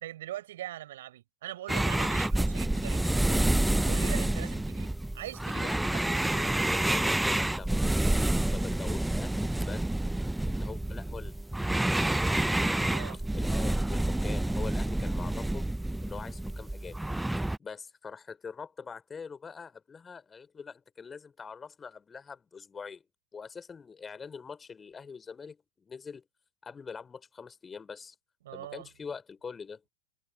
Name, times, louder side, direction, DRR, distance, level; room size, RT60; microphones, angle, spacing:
voice 1, 0.0-3.5 3.9-6.7 12.7-13.2 28.4-28.9, right 13 dB, 55° right, 5.7 m, -42 dB
sound 1, 1.7-17.6, right 1 dB, 5° right, 0.5 m, -28 dB
voice 2, 5.5-9.9 10.2-11.3 12.8-13.0 13.3-15.7 16.0-17.0 17.6-23.0 23.3-26.2 26.6-28.1 28.5-29.8, left 5 dB, 15° left, 4.5 m, -44 dB
figure-of-eight pair, 90°, 0 cm